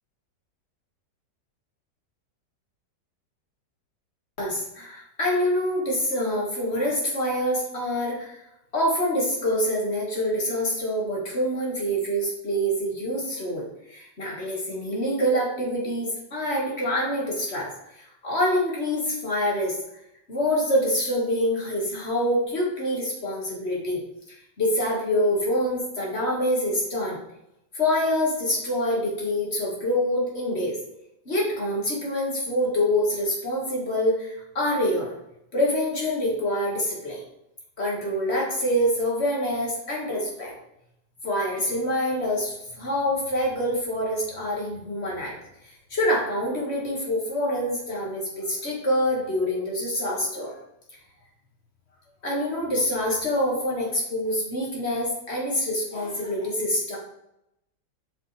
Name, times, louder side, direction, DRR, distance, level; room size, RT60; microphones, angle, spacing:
voice 1, 4.4-8.4 8.7-17.7 18.0-19.8 20.3-24.0 24.6-27.2 27.7-30.8 31.3-35.1 35.5-37.2 37.8-40.5 41.2-45.4 45.6-50.6 52.2-57.0, equal, 35° left, -4 dB, 2.3 m, -26 dB
7.9 x 5.8 x 3.4 m, 0.82 s
omnidirectional pair, 1.9 m